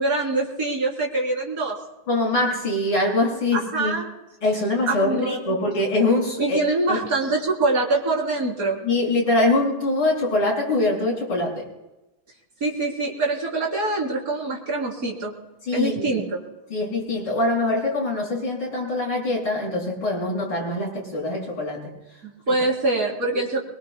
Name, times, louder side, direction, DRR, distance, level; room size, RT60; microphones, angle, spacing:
voice 1, 0.0-1.8 3.5-4.1 4.9-5.6 6.4-8.8 12.6-15.3 15.7-16.4 22.2-23.6, right 2 dB, 40° right, -2 dB, 3.9 m, -24 dB
voice 2, 2.1-3.9 4.4-6.6 6.9-7.0 8.8-11.7 15.7-16.2 16.7-21.9, left 2 dB, 70° left, -4 dB, 6.8 m, -23 dB
23.5 x 23.0 x 2.2 m, 1.0 s
omnidirectional pair, 2.4 m